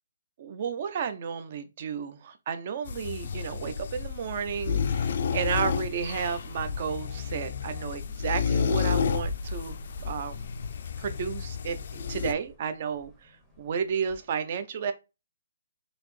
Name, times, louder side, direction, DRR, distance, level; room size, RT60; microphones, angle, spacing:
voice 1, 0.4-9.8 10.0-10.4 11.0-11.8 12.1-13.3 13.6-14.9, right 7 dB, 35° right, 0.5 m, -32 dB
sound 1, 2.9-12.3, left 6 dB, 45° left, 0.3 m, -31 dB
sound 2, 9.2-14.3, left 2 dB, ahead, 0.7 m, -45 dB
4.0 x 2.8 x 3.1 m
hypercardioid pair, 165°, 0 cm